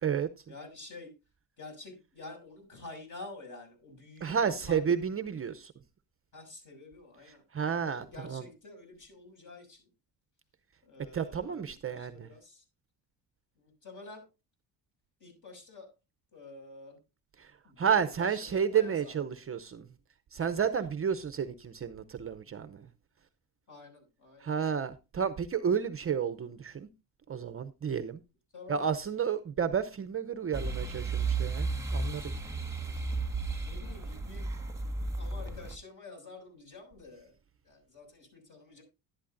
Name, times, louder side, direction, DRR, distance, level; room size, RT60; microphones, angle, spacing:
voice 1, 0.5-1.1 1.6-4.8 6.3-7.4 7.8-9.9 10.9-11.7 12.0-12.6 13.8-14.2 15.2-15.9 16.3-17.0 17.6-19.1 23.7-24.5 28.5-28.9 33.6-34.5 35.2-37.3 37.6-38.8, left 3 dB, 45° left, 6.3 m, -48 dB
voice 2, 4.2-5.7 7.2-8.5 11.1-12.3 17.4-17.5 17.8-19.9 20.3-22.9 24.4-26.9 27.3-28.2 28.7-32.4, right 7 dB, 30° right, 0.7 m, -31 dB
sound 1, 30.5-35.8, right 3 dB, 5° right, 1.5 m, -33 dB
11.5 x 11.0 x 2.6 m
cardioid pair, 105°, 43 cm